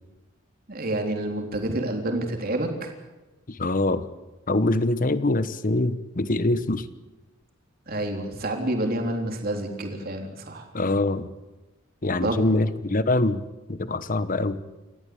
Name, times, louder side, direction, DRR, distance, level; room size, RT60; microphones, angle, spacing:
voice 1, 0.7-2.9 7.9-10.7 12.2-12.4, right 1 dB, 50° right, 3 dB, 3.7 m, -28 dB
voice 2, 3.5-4.1 4.5-6.9 10.7-11.3 12.0-13.4 13.7-14.6, left 2 dB, 40° left, 13 dB, 1.1 m, -24 dB
28.5 x 14.5 x 8.7 m, 1.1 s
head